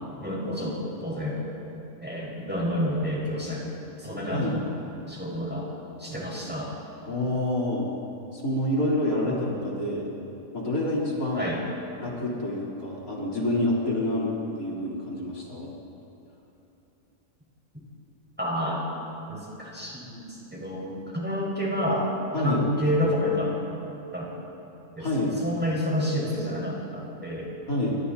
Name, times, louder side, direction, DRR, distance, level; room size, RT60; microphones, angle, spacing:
voice 1, 0.2-1.4 2.0-3.6 4.0-4.7 5.1-5.7 6.0-6.7 9.3-9.4 11.3-11.6 18.4-18.8 19.3-20.2 20.5-22.1 22.4-23.5 24.1-24.3 25.0-27.5, equal, 5° right, -4 dB, 5.6 m, -29 dB
voice 2, 7.1-7.9 8.3-10.1 10.5-11.5 12.0-15.7 22.3-22.7 25.0-25.4 27.7-28.0, left 1 dB, 80° left, -5 dB, 4.6 m, -27 dB
28.5 x 25.0 x 4.3 m, 3.0 s
omnidirectional pair, 1.4 m